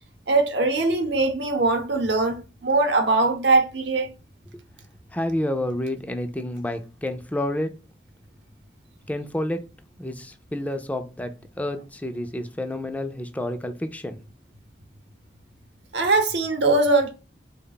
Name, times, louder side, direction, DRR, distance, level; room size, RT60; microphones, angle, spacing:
voice 1, 0.3-4.1 15.9-17.1, right 3 dB, 80° right, 0.8 m, -21 dB
voice 2, 5.1-7.7 9.1-9.6 10.0-11.3 11.6-14.2, left 1 dB, 10° left, 0.4 m, -29 dB
3.5 x 2.2 x 3.9 m
head